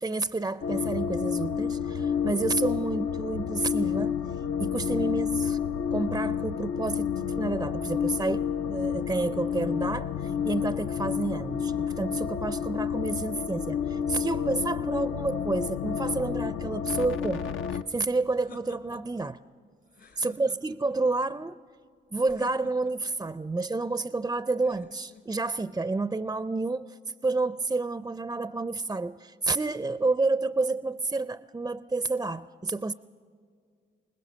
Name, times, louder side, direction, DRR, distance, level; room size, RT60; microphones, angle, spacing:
voice 1, 0.0-4.2 4.6-5.6 5.9-19.4 20.2-21.6 22.1-27.0 27.2-32.9, right 3 dB, 15° right, 0.4 m, -30 dB
sound 1, 0.6-17.8, left 7 dB, 80° left, 0.6 m, -30 dB
sound 2, 17.9-19.3 19.9-21.0 22.2-23.2 24.6-25.5, left 5 dB, 60° left, 2.5 m, -51 dB
21.0 x 20.0 x 6.6 m
cardioid pair, 65°, 20 cm